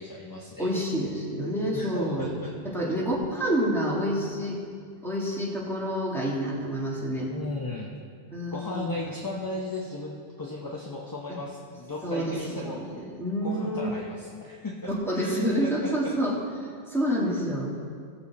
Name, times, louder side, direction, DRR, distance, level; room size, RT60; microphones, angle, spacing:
voice 1, 0.0-0.7 1.7-2.5 7.2-7.9 8.5-12.8 13.4-14.9 15.2-16.1, left 2 dB, 20° left, -2 dB, 0.7 m, -36 dB
voice 2, 0.6-2.3 2.6-4.6 5.0-7.3 8.3-9.1 11.3-11.4 12.0-13.9 14.9-16.4 16.9-17.7, equal, ahead, -5 dB, 1.9 m, -28 dB
17.0 x 6.9 x 4.1 m, 2.2 s
omnidirectional pair, 1.2 m